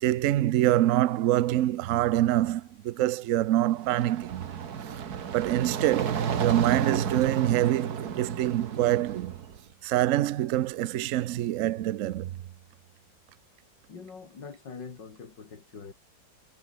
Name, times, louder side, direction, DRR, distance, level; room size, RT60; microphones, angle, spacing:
voice 1, 0.0-4.4 5.3-9.4 9.8-12.3, right 14 dB, 75° right, 0.7 m, -25 dB
sound 1, 3.6-9.6, right 7 dB, 55° right, 1.9 m, -32 dB
voice 2, 13.9-15.9, left 5 dB, 65° left, 3.4 m, -43 dB
omnidirectional pair, 2.1 m